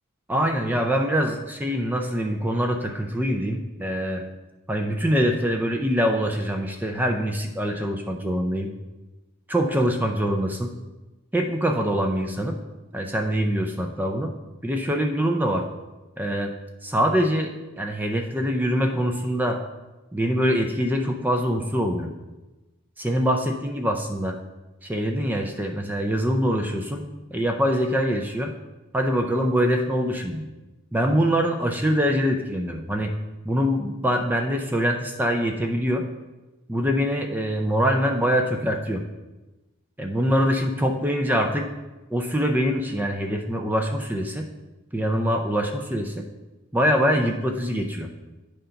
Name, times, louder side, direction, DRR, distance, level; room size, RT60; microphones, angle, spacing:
voice 1, 0.3-4.2 4.7-8.7 9.5-10.7 11.3-12.6 12.9-14.3 14.6-15.7 16.2-16.5 16.8-19.6 20.1-22.1 23.0-24.4 24.8-28.5 28.9-30.5 30.9-33.1 33.4-36.0 36.7-39.0 40.0-41.7 42.1-44.5 44.9-46.3 46.7-48.1, equal, 10° right, 3 dB, 0.4 m, -24 dB
9.1 x 3.8 x 5.6 m, 1.1 s
head